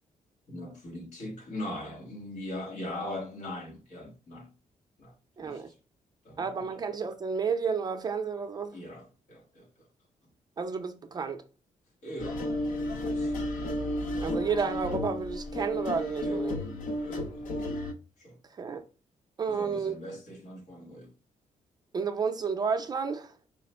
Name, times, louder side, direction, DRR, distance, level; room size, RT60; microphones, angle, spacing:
voice 1, 0.5-4.5 5.0-5.7 6.2-6.8 8.7-9.9 12.0-12.4 13.1-13.4 16.2-16.5 17.0-17.5 18.2-18.4 19.5-21.1, left 1 dB, 65° left, 1.3 m, -41 dB
voice 2, 5.4-5.7 6.4-8.8 10.6-11.4 14.2-16.6 18.6-18.8 19.4-19.9 21.9-23.3, right 5 dB, 30° right, 0.5 m, -31 dB
sound 1, 12.2-17.9, left 1 dB, 85° left, 0.9 m, -32 dB
5.0 x 2.1 x 4.1 m
cardioid pair, 150°, 13 cm